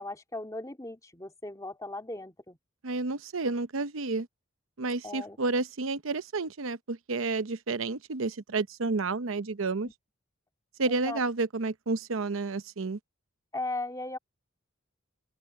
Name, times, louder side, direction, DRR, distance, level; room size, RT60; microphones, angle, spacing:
voice 1, 0.0-2.6 5.0-5.4 9.8-9.9 10.8-11.2 13.5-14.2, left 2 dB, 15° left, 2.4 m, -37 dB
voice 2, 2.8-4.3 4.8-9.9 10.8-13.0, right 3 dB, 85° right, 0.8 m, -30 dB
open air
head